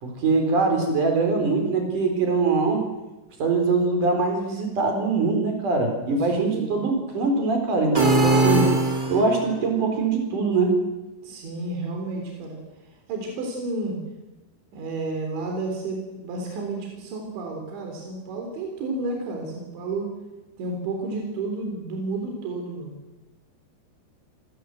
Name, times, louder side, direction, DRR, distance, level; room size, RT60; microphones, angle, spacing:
voice 1, 0.0-2.9 3.4-8.7 9.1-10.8, right 3 dB, 45° right, 4 dB, 5.8 m, -23 dB
voice 2, 6.1-6.9 11.2-12.6 13.1-14.0 14.7-20.1 20.6-23.0, right 2 dB, 75° right, 2 dB, 6.0 m, -31 dB
sound 1, 7.9-9.5, right 2 dB, 15° right, 2.0 m, -20 dB
26.5 x 19.0 x 7.9 m, 1.1 s
omnidirectional pair, 5.2 m